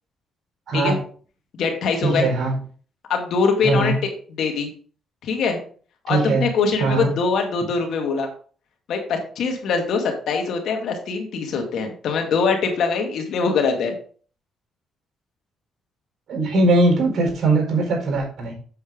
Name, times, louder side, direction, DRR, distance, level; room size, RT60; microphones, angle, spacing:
voice 1, 0.7-1.0 2.0-2.6 3.6-4.0 6.1-6.4 6.8-7.1 16.3-18.5, right 2 dB, 60° right, 2 dB, 4.4 m, -20 dB
voice 2, 1.5-2.2 3.1-3.9 4.4-4.7 5.2-5.6 6.0-8.3 8.9-14.0, left 5 dB, 75° left, 3 dB, 2.1 m, -23 dB
7.9 x 6.6 x 3.8 m, 0.43 s
cardioid pair, 90°, 0 cm